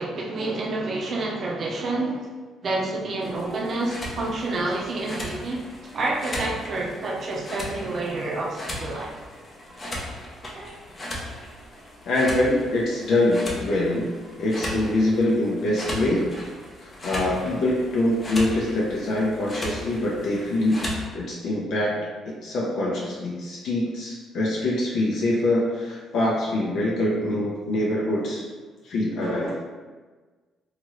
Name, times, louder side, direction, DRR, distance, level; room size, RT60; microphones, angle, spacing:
voice 1, 0.0-2.3 2.6-9.1 10.5-10.7 29.2-29.6, right 2 dB, 50° right, -2 dB, 0.6 m, -29 dB
sound 1, 3.2-21.0, left 1 dB, 30° left, 0.6 m, -37 dB
voice 2, 12.0-14.1 14.4-16.3 16.8-20.9 21.1-22.0 22.3-28.4 28.8-29.5, left 1 dB, 70° left, -5 dB, 0.6 m, -24 dB
2.8 x 2.4 x 3.0 m, 1.3 s
cardioid pair, 95°, 0 cm